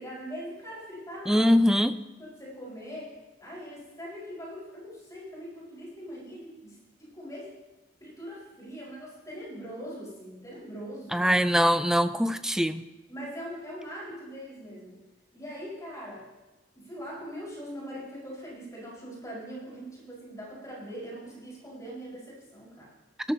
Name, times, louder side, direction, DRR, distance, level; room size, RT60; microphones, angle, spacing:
voice 1, 0.0-1.5 2.1-3.1 3.4-7.5 8.0-11.4 13.1-15.0 15.3-16.3 16.7-22.9, equal, 20° left, -6 dB, 5.0 m, -41 dB
voice 2, 1.3-1.9 11.1-12.8, equal, 5° right, 11 dB, 0.4 m, -22 dB
18.5 x 13.0 x 2.9 m, 1.1 s
head